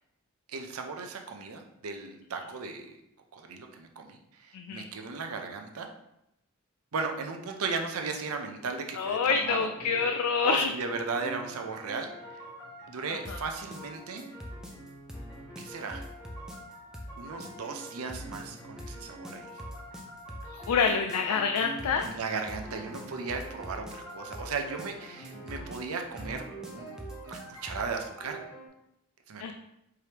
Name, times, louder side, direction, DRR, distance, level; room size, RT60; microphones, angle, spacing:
voice 1, 0.5-3.0 3.3-5.9 6.9-9.7 10.4-12.4 12.9-14.2 15.6-16.1 17.2-19.5 22.0-26.5 26.7-27.0 27.3-28.4 29.3-29.5, right 4 dB, 70° right, 4 dB, 0.6 m, -36 dB
voice 2, 4.5-4.8 9.0-10.7 13.3-13.4 20.5-22.1 29.4-29.5, left 5 dB, 80° left, 4 dB, 0.4 m, -27 dB
sound 1, 9.7-10.4 10.9-22.4 22.6-28.7, right 1 dB, 15° left, 1.4 m, -46 dB
sound 2, 13.2-27.9, equal, 5° right, 0.4 m, -43 dB
4.8 x 3.2 x 2.9 m, 0.82 s
head